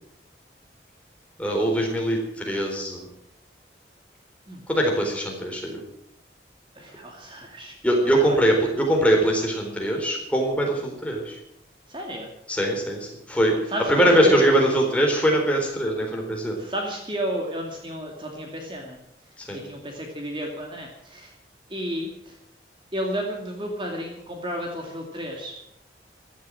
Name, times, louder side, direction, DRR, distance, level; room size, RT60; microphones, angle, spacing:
voice 1, 1.4-3.1 4.7-5.8 7.8-11.4 12.5-16.6 19.4-19.6, right 1 dB, 5° left, 0 dB, 4.0 m, -22 dB
voice 2, 6.8-7.8 8.0-8.4 11.9-12.3 13.7-14.5 16.6-19.0 19.5-21.3 21.7-22.4 22.9-25.5, equal, 25° right, 1 dB, 2.5 m, -32 dB
15.5 x 12.0 x 7.7 m, 0.79 s
head